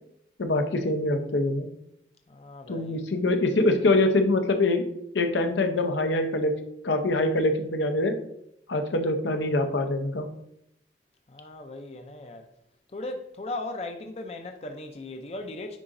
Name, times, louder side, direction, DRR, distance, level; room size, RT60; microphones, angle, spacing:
voice 1, 0.4-1.7 2.7-4.8 5.1-6.5 6.8-8.2 8.7-10.3, left 2 dB, 85° left, 0.7 m, -24 dB
voice 2, 2.3-3.0 11.3-12.5 12.9-15.8, left 2 dB, 35° left, 0.4 m, -37 dB
9.7 x 3.9 x 2.6 m
head